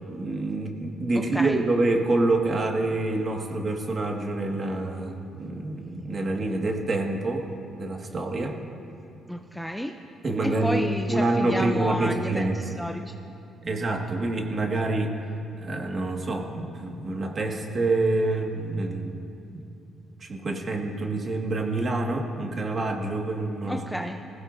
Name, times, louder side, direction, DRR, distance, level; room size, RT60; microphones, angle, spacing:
voice 1, 0.1-7.5 7.8-8.5 10.2-12.6 13.6-15.1 15.6-19.2 19.5-19.7 20.2-23.8, right 2 dB, 40° right, 2 dB, 1.8 m, -27 dB
voice 2, 1.1-1.6 9.3-9.9 10.4-13.1 23.6-24.2, equal, ahead, 5 dB, 0.6 m, -31 dB
20.5 x 16.0 x 2.6 m, 2.7 s
cardioid pair, 90°, 0 cm